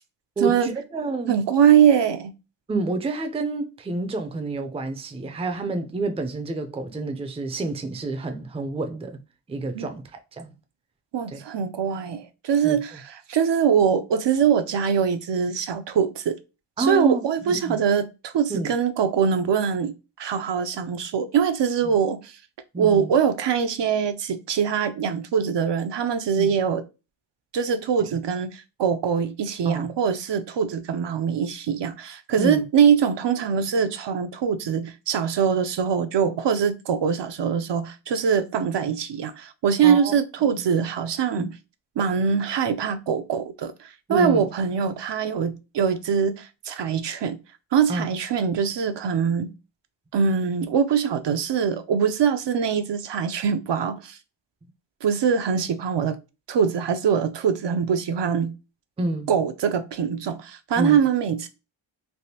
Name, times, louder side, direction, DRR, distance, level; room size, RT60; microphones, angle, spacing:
voice 1, 0.4-1.4 2.7-9.2 9.5-10.5 11.3-11.4 12.6-13.0 16.8-17.8 18.5-18.7 21.8-21.9 22.7-23.1 26.3-26.5 28.0-28.1 29.7-29.9 32.4-32.6 39.8-40.1 40.4-40.5 41.3-41.5 44.1-44.5 47.9-48.1 59.0-59.3 60.8-61.0, right 2 dB, 15° right, 0.4 m, -29 dB
voice 2, 1.3-2.3 9.8-9.9 11.1-16.4 16.8-19.9 20.2-22.4 22.8-26.8 27.5-41.5 42.0-47.4 47.7-49.5 50.1-54.2 55.0-56.2 56.5-58.5 59.3-61.5, right 7 dB, 65° right, 0.5 m, -23 dB
3.4 x 2.4 x 2.7 m
wide cardioid pair, 80°, 46 cm